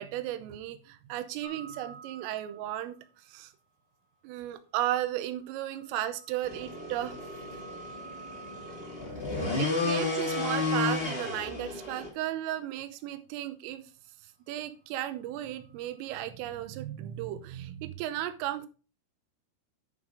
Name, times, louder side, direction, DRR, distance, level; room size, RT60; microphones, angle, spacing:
voice 1, 0.0-3.5 4.2-7.2 9.3-13.8 14.5-18.7, right 13 dB, 80° right, 11 dB, 3.4 m, -35 dB
sound 1, 1.4-3.1 5.1-9.4 15.4-16.1, right 5 dB, 75° left, 3.3 m, -50 dB
sound 2, 6.4-12.1, left 3 dB, 25° left, 1.1 m, -32 dB
10.5 x 7.3 x 3.7 m, 0.34 s
omnidirectional pair, 5.9 m